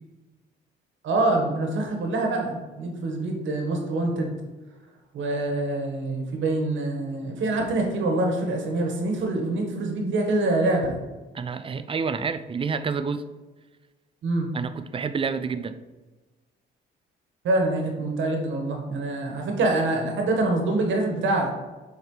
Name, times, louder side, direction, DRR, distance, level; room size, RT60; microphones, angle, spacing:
voice 1, 1.0-4.4 5.1-11.0 14.2-14.5 17.4-21.5, right 2 dB, 75° right, 2 dB, 1.5 m, -25 dB
voice 2, 11.3-13.2 14.5-15.8, right 5 dB, 25° right, 12 dB, 0.4 m, -28 dB
7.0 x 4.7 x 3.3 m, 1.2 s
cardioid pair, 90°, 20 cm